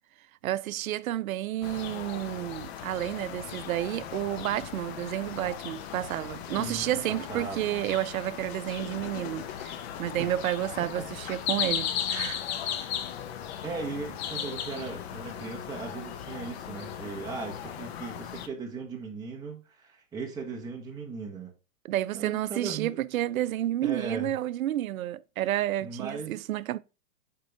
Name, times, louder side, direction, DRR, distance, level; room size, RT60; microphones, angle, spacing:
voice 1, 0.4-12.5 21.8-26.8, right 13 dB, 80° right, 0.5 m, -31 dB
sound 1, 1.6-18.5, left 9 dB, 50° left, 1.0 m, -37 dB
voice 2, 6.6-7.8 10.2-10.3 10.8-11.1 13.6-21.5 22.1-23.0 23.8-24.3 25.8-26.4, right 4 dB, 10° right, 1.0 m, -38 dB
6.7 x 4.6 x 3.3 m
hypercardioid pair, 135°, 41 cm